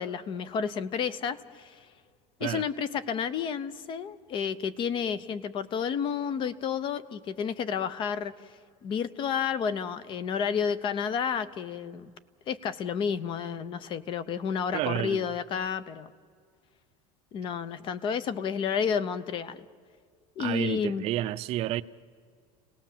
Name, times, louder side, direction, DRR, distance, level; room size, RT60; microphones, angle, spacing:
voice 1, 0.0-1.9 2.4-8.3 8.8-12.1 12.5-16.1 17.3-19.7 20.4-21.1, left 7 dB, 30° left, 0.8 m, -31 dB
voice 2, 14.7-15.2 20.4-21.8, right 14 dB, 40° right, 0.6 m, -30 dB
30.0 x 19.0 x 7.5 m
cardioid pair, 175°, 16 cm